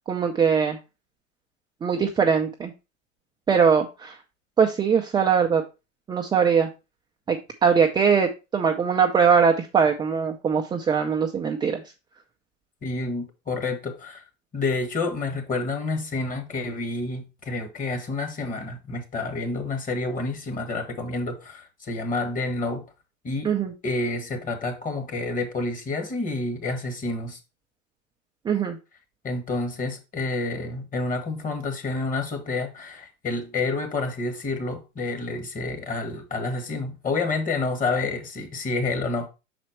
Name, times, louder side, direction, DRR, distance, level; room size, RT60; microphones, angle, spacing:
voice 1, 0.1-0.8 1.8-2.7 3.5-4.2 4.6-5.6 6.1-6.7 7.3-11.8 23.4-23.7 28.4-28.8, right 6 dB, 10° right, 0.5 m, -21 dB
voice 2, 12.8-14.2 14.5-22.8 23.2-23.5 23.8-27.4 29.2-39.3, left 3 dB, 20° left, 1.4 m, -29 dB
5.8 x 4.4 x 4.4 m
hypercardioid pair, 110°, 38 cm